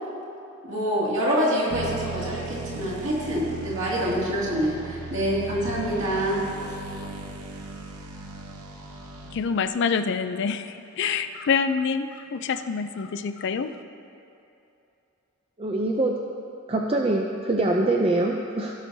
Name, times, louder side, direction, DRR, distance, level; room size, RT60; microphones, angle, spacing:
voice 1, 0.6-6.4, equal, 55° right, -7 dB, 2.3 m, -26 dB
sound 1, 1.7-9.7, right 3 dB, 80° right, 0.9 m, -37 dB
voice 2, 9.3-13.7, left 5 dB, 50° left, 10 dB, 0.4 m, -26 dB
voice 3, 15.6-16.2 16.7-18.7, right 2 dB, 25° right, 0 dB, 0.4 m, -24 dB
17.0 x 6.3 x 2.7 m, 2.7 s
head